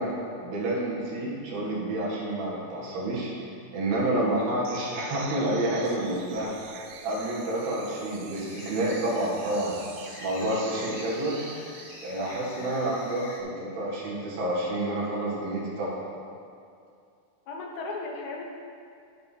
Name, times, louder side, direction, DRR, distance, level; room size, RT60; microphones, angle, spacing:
voice 1, 0.0-3.3 3.7-6.5 7.0-9.8 10.2-11.4 12.0-16.0, right 1 dB, 65° right, -6 dB, 3.7 m, -29 dB
sound 1, 4.6-12.2, right 7 dB, 80° right, 2.1 m, -45 dB
sound 2, 8.3-13.4, left 3 dB, 90° left, 1.5 m, -46 dB
voice 2, 17.5-18.5, left 3 dB, 70° left, -1 dB, 3.0 m, -36 dB
9.5 x 8.8 x 4.2 m, 2.4 s
omnidirectional pair, 4.9 m